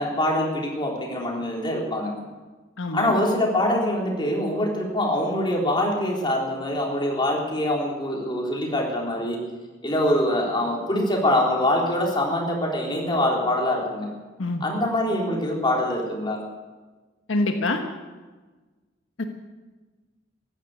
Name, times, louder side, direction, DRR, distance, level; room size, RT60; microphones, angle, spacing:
voice 1, 0.0-2.1 2.9-9.4 9.8-14.1 14.6-16.4, left 1 dB, 25° left, -2 dB, 3.7 m, -24 dB
voice 2, 2.8-3.1 14.4-14.6 17.3-17.8 19.2-19.3, left 2 dB, 80° left, 4 dB, 1.3 m, -25 dB
15.0 x 11.5 x 8.2 m, 1.3 s
head